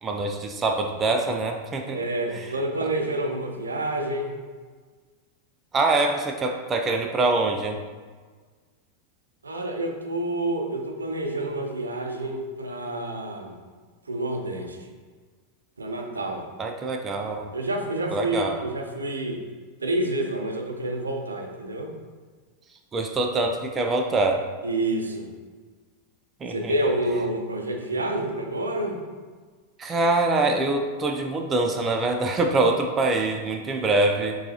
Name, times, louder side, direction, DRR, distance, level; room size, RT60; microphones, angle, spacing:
voice 1, 0.0-2.0 2.3-2.5 5.7-7.8 16.6-17.5 18.1-18.6 22.9-24.4 26.4-26.7 29.8-34.4, right 2 dB, 20° right, 3 dB, 0.4 m, -24 dB
voice 2, 1.9-4.4 9.4-13.6 14.1-14.8 15.8-16.4 17.5-19.4 19.8-21.9 24.6-25.3 26.5-29.0 31.2-31.3, right 1 dB, 75° right, 2 dB, 0.5 m, -28 dB
6.6 x 2.4 x 2.8 m, 1.5 s
figure-of-eight pair, 90°, 0 cm